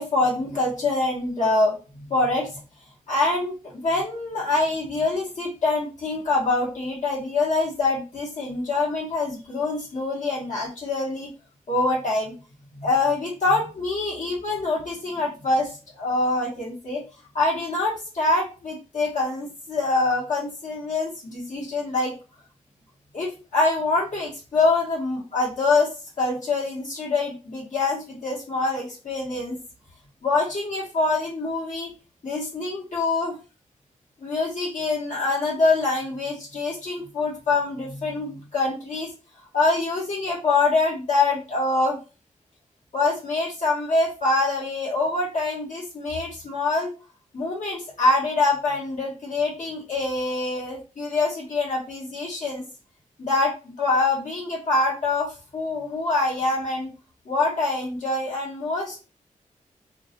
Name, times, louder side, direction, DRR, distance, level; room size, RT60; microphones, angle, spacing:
voice 1, 0.0-2.6 3.1-11.3 11.7-12.3 12.8-17.0 17.3-22.1 23.1-29.6 30.2-31.9 32.2-33.4 34.2-39.1 39.5-42.0 42.9-46.9 47.3-52.6 53.2-56.9 57.3-59.0, left 3 dB, 65° left, -5 dB, 0.9 m, -25 dB
2.2 x 2.0 x 2.7 m, 0.34 s
cardioid pair, 65°, 14 cm